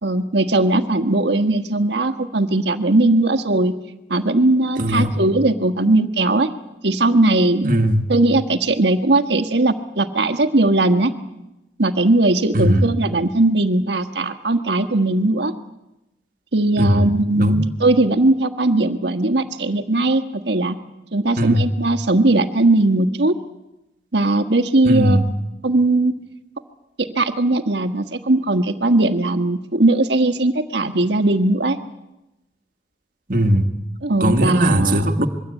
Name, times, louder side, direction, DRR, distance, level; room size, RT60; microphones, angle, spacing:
voice 1, 0.0-3.7 4.1-6.5 6.8-7.7 8.1-11.1 11.8-15.5 16.5-20.8 21.1-23.3 24.1-25.2 25.6-26.2 27.0-31.8 34.0-35.0, right 2 dB, 75° right, 1.5 m, -18 dB
voice 2, 4.8-5.1 7.6-8.1 12.5-12.9 16.8-17.1 17.4-17.7 21.3-21.7 24.8-25.3 33.3-33.7 34.2-35.3, equal, 50° right, 1.8 m, -18 dB
25.5 x 22.5 x 8.3 m
head